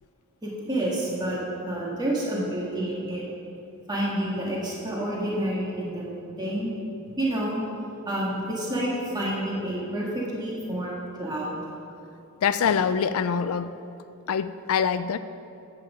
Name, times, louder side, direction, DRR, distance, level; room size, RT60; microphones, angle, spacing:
voice 1, 0.4-3.2 3.9-6.7 7.2-7.6 8.1-11.6, right 1 dB, 20° right, -5 dB, 1.8 m, -29 dB
voice 2, 12.4-13.7 14.3-15.2, left 7 dB, 65° left, 13 dB, 0.4 m, -24 dB
11.0 x 8.7 x 5.1 m, 2.9 s
head